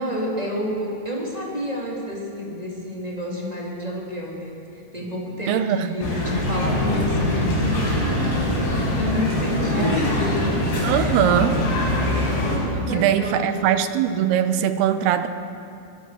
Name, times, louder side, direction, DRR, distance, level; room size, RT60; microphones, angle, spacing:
voice 1, 0.0-10.5 10.8-11.2 12.5-13.8, left 1 dB, 10° right, -4 dB, 3.6 m, -30 dB
voice 2, 5.5-6.0 9.8-10.0 10.8-11.6 12.9-15.3, right 10 dB, 80° right, 10 dB, 2.7 m, -21 dB
sound 1, 6.0-12.6, left 1 dB, 80° left, 7.6 m, -23 dB
24.0 x 20.0 x 6.3 m, 2.6 s
omnidirectional pair, 4.7 m